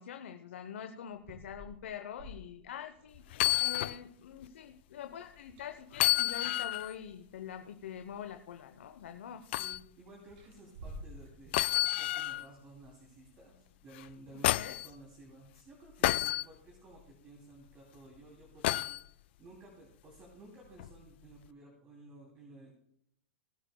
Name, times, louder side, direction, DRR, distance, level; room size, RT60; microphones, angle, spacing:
voice 1, 0.0-3.2 3.6-9.5 14.4-14.8, left 9 dB, 75° left, 7 dB, 0.8 m, -44 dB
sound 1, 1.1-3.5 5.2-6.2 7.3-7.4 7.9-8.7 10.2-12.0, equal, 60° right, 5.4 m, -51 dB
sound 2, 3.3-4.0 4.4-4.5 5.9-6.9 9.5-9.8 11.5-12.5 13.9-14.9 16.0-16.4 18.6-19.0 20.8-20.9, left 16 dB, 60° left, 0.3 m, -30 dB
voice 2, 9.5-13.6 13.8-22.8, right 2 dB, 30° right, -2 dB, 3.0 m, -55 dB
19.0 x 10.0 x 2.3 m, 0.74 s
hypercardioid pair, 130°, 7 cm